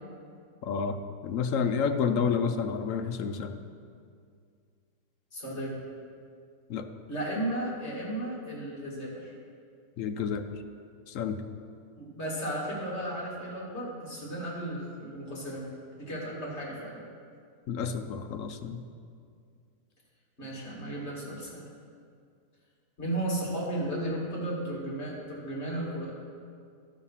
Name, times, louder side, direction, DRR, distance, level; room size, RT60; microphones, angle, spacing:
voice 1, 0.6-3.5 6.7-6.9 10.0-10.5 11.1-11.4 17.7-18.8, left 6 dB, 65° left, 8 dB, 0.9 m, -30 dB
voice 2, 5.3-5.7 7.1-9.3 12.0-15.7 16.0-17.0 20.4-21.6 23.0-26.1, right 1 dB, 45° left, -5 dB, 2.7 m, -34 dB
12.0 x 6.1 x 5.6 m, 2.2 s
omnidirectional pair, 1.6 m